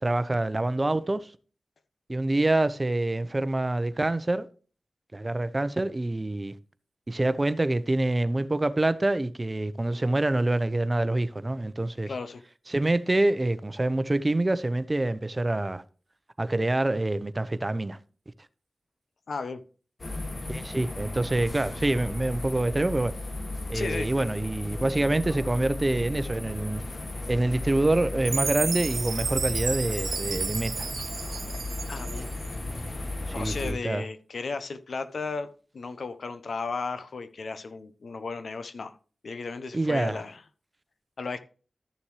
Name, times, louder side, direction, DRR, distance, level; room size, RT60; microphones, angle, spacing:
voice 1, 0.0-1.3 2.1-4.5 5.1-6.5 7.1-12.1 12.7-15.8 16.4-18.0 20.5-23.1 23.7-26.8 27.3-30.9 33.3-34.0 39.7-40.2, right 2 dB, 30° right, 0.9 m, -26 dB
voice 2, 12.1-12.4 19.3-19.6 23.7-24.1 31.9-32.3 33.3-35.5 35.7-38.9 39.2-40.4 41.2-41.4, left 4 dB, 75° left, 0.9 m, -34 dB
sound 1, 20.0-33.7, left 2 dB, 50° left, 2.0 m, -35 dB
Chime, 28.2-32.5, right 5 dB, 80° right, 0.5 m, -32 dB
13.0 x 7.0 x 3.2 m
cardioid pair, 45°, 0 cm